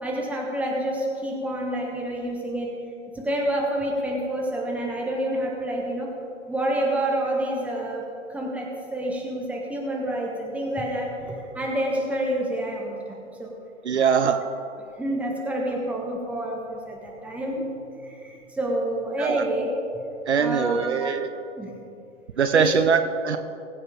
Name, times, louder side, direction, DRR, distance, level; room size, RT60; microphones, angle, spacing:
voice 1, 0.0-2.7 3.1-6.1 6.5-13.5 14.2-14.4 15.0-19.7 20.4-21.1 21.6-21.7 22.5-22.7, right 1 dB, 5° right, -2 dB, 1.6 m, -28 dB
voice 2, 13.8-14.4 19.2-19.4 20.3-21.3 22.4-23.4, right 6 dB, 65° right, 8 dB, 0.8 m, -22 dB
21.0 x 8.1 x 3.7 m, 2.7 s
figure-of-eight pair, 115°, 36 cm